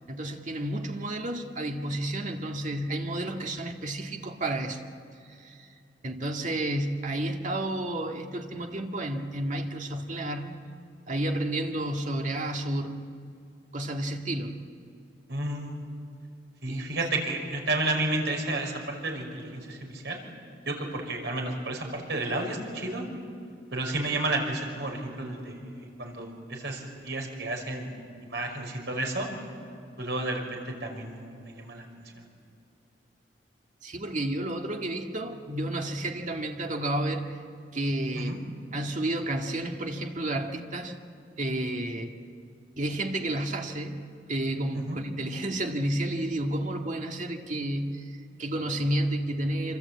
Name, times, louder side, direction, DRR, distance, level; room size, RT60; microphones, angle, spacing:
voice 1, 0.1-4.8 5.3-5.8 6.0-10.5 11.1-13.1 13.7-14.6 16.7-16.9 33.8-37.4 37.7-38.4 38.7-41.0 41.4-42.1 42.8-44.0 44.3-49.8, right 1 dB, 45° right, 3 dB, 1.9 m, -31 dB
voice 2, 15.3-15.8 16.6-20.2 20.7-23.1 23.7-27.9 28.3-29.3 30.0-32.2 38.1-38.4 44.7-45.0, right 2 dB, 70° right, 2 dB, 5.7 m, -32 dB
27.5 x 26.0 x 8.4 m, 2.5 s
head